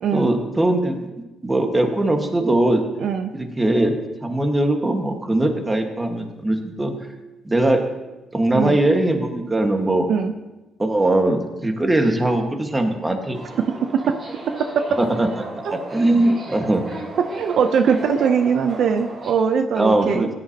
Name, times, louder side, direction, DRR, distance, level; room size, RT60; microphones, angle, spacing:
voice 1, 0.1-1.0 1.4-2.8 3.3-6.9 7.4-7.8 8.3-10.1 10.8-13.4 15.0-15.3 15.7-16.8 19.8-20.3, right 1 dB, 15° right, 4 dB, 1.6 m, -20 dB
voice 2, 3.0-3.3 8.5-8.8 10.1-10.3 14.1-14.2 14.6-15.0 15.6-15.8 17.2-20.3, right 6 dB, 70° right, 8 dB, 0.6 m, -21 dB
Subway metro underground, 13.3-19.3, right 2 dB, 50° right, 4.5 m, -35 dB
16.0 x 10.0 x 2.9 m, 1.1 s
cardioid pair, 90°, 0 cm